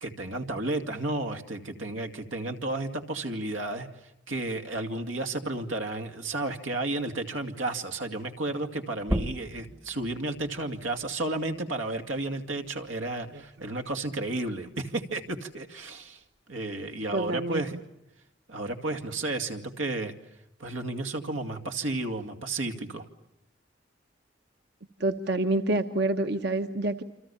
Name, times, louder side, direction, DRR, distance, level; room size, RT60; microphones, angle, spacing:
voice 1, 0.0-3.9 4.3-16.2 16.5-17.8 18.5-20.1 20.6-23.1, right 2 dB, 90° right, 7 dB, 2.5 m, -32 dB
sound 1, 9.0-14.2 14.6-16.4, equal, 15° right, 0.9 m, -38 dB
voice 2, 17.1-17.6 25.0-27.0, right 2 dB, 60° right, 6 dB, 1.1 m, -27 dB
28.5 x 26.5 x 7.2 m, 0.86 s
head